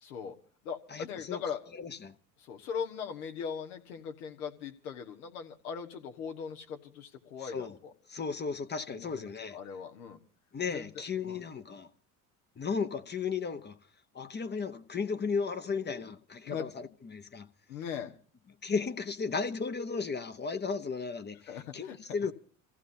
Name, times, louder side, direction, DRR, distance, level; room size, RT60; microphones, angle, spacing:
voice 1, 0.0-0.3 0.6-1.6 2.4-7.9 8.9-10.2 10.7-11.4 16.5-16.7 17.7-18.1 21.4-22.3, left 7 dB, 80° left, 1.5 m, -40 dB
voice 2, 0.9-1.4 1.7-2.1 7.5-7.7 8.1-9.6 10.5-11.9 12.6-13.8 14.1-17.5 18.6-22.3, left 5 dB, 25° left, 0.8 m, -35 dB
29.0 x 15.0 x 2.7 m
hypercardioid pair, 70°, 43 cm